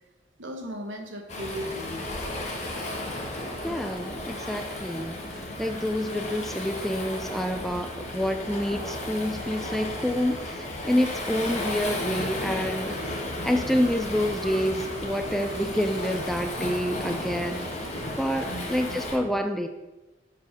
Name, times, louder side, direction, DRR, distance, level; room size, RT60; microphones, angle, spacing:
voice 1, 0.4-2.0 11.5-11.7 18.4-19.0, equal, 75° right, 2 dB, 1.3 m, -37 dB
Waves surf, 1.3-19.2, left 1 dB, 35° left, 1.4 m, -34 dB
voice 2, 3.6-13.0 13.4-17.7 18.2-19.7, equal, ahead, 6 dB, 0.4 m, -28 dB
7.8 x 4.8 x 5.1 m, 1.1 s
head